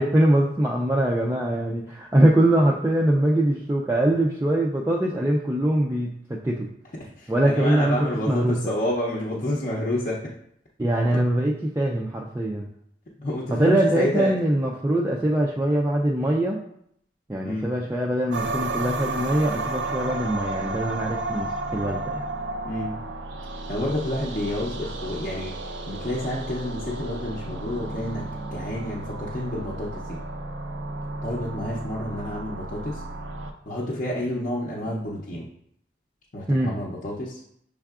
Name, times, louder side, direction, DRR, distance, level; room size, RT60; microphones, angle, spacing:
voice 1, 0.0-6.7 7.3-8.0 8.3-8.6 10.8-12.7 13.5-16.6 17.3-22.2 36.5-36.7, right 1 dB, 15° right, -3 dB, 0.3 m, -22 dB
voice 2, 7.0-10.3 13.2-14.3 17.4-17.7 22.6-23.0 23.7-25.6 25.9-30.2 31.2-33.0 33.7-35.5 36.3-37.4, left 1 dB, 45° left, -6 dB, 0.6 m, -29 dB
sound 1, 18.3-33.5, right 2 dB, 85° right, 0.5 m, -33 dB
6.4 x 3.5 x 2.4 m, 0.71 s
head